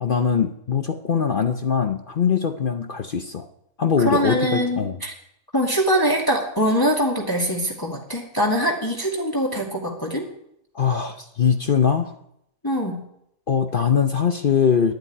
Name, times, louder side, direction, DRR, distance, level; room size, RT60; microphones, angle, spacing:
voice 1, 0.0-3.5 3.8-5.0 10.7-12.1 13.5-14.9, left 7 dB, 50° left, 7 dB, 0.6 m, -22 dB
voice 2, 4.0-5.1 5.5-10.3 12.6-13.0, equal, 15° left, -2 dB, 2.0 m, -23 dB
11.0 x 8.0 x 9.9 m, 0.76 s
omnidirectional pair, 1.8 m